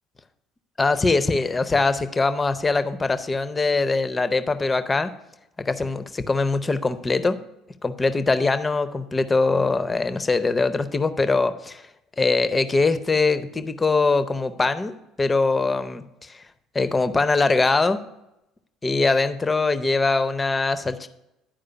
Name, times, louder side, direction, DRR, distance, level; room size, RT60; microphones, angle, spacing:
voice 1, 0.8-5.1 5.6-7.4 7.8-11.8 12.2-16.4 16.7-18.0 18.8-21.1, left 3 dB, 20° left, 12 dB, 0.6 m, -22 dB
10.5 x 4.9 x 5.7 m, 0.88 s
figure-of-eight pair, 55°, 0 cm